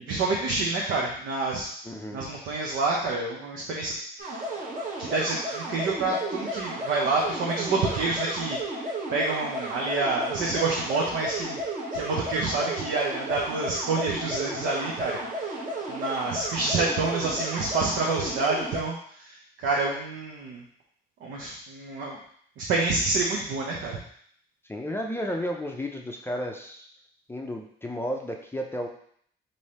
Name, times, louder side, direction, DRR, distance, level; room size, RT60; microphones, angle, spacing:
voice 1, 0.1-1.7 2.1-3.9 4.2-4.4 5.0-8.6 9.1-11.6 11.9-15.5 15.9-18.9 19.2-20.6 21.2-22.2 22.6-24.0, right 3 dB, 85° right, -2 dB, 0.7 m, -28 dB
voice 2, 1.8-2.3 24.7-26.9 27.3-28.9, equal, 10° left, 1 dB, 0.5 m, -33 dB
sound 1, 4.2-18.8, right 1 dB, 40° right, 1.1 m, -33 dB
3.2 x 2.7 x 4.2 m, 0.62 s
cardioid pair, 90°, 20 cm